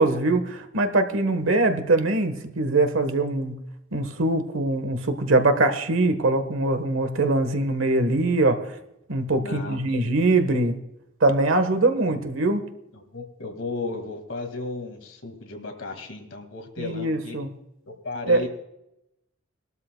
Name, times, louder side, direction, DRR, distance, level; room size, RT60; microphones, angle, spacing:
voice 1, 0.0-3.6 3.9-8.8 9.1-10.8 11.2-12.6 16.8-17.5 18.3-18.4, right 2 dB, 85° right, 8 dB, 1.2 m, -22 dB
voice 2, 9.3-10.0 10.3-10.4 12.1-12.2 12.9-17.4 17.9-18.5, left 3 dB, 70° left, 4 dB, 2.0 m, -35 dB
20.5 x 12.5 x 2.2 m, 0.87 s
head